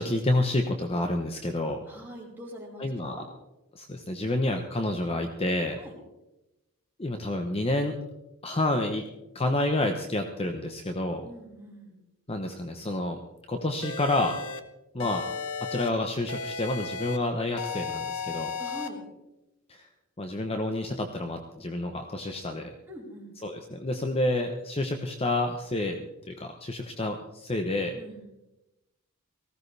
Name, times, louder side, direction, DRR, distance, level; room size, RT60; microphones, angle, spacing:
voice 1, 0.0-1.8 2.8-3.2 3.7-5.8 7.0-8.0 8.4-9.0 9.3-11.2 12.3-13.2 13.5-14.4 14.9-15.2 15.6-18.5 19.7-19.9 20.2-22.7 23.4-28.0, left 1 dB, 30° left, 5 dB, 0.9 m, -29 dB
voice 2, 1.9-3.3 5.8-5.9 11.2-11.9 15.0-15.1 18.6-19.0 22.9-23.3 28.0-28.2, equal, 10° right, -5 dB, 4.7 m, -43 dB
sound 1, 13.8-14.6 15.0-15.9 16.3-17.2 17.6-18.9, left 5 dB, 75° left, 1.1 m, -34 dB
18.5 x 15.5 x 3.4 m, 0.95 s
head